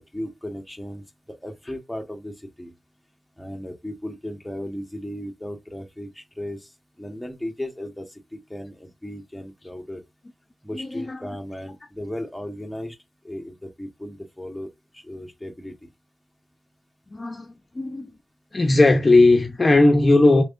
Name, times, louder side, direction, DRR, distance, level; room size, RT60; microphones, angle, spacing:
voice 1, 0.0-2.7 3.4-6.7 7.0-10.0 10.6-13.0 13.2-15.9, left 1 dB, 5° left, 1.2 m, -36 dB
voice 2, 10.7-11.2 17.1-18.1 18.5-20.4, left 2 dB, 35° left, 0.7 m, -17 dB
4.5 x 3.3 x 2.5 m
cardioid pair, 70°, 0 cm